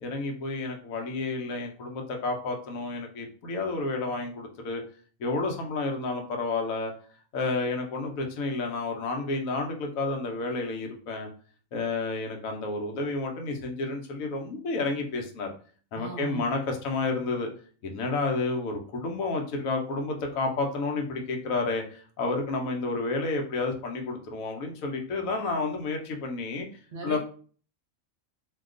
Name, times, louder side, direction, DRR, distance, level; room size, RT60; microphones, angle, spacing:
voice 1, 0.0-4.8 5.2-6.9 7.3-11.3 11.7-15.5 15.9-17.5 17.8-26.7 27.0-27.2, left 3 dB, 90° left, 2 dB, 1.1 m, -30 dB
voice 2, 15.9-16.6 26.9-27.2, right 3 dB, 45° right, 0 dB, 0.9 m, -38 dB
2.7 x 2.3 x 3.6 m, 0.42 s
omnidirectional pair, 1.4 m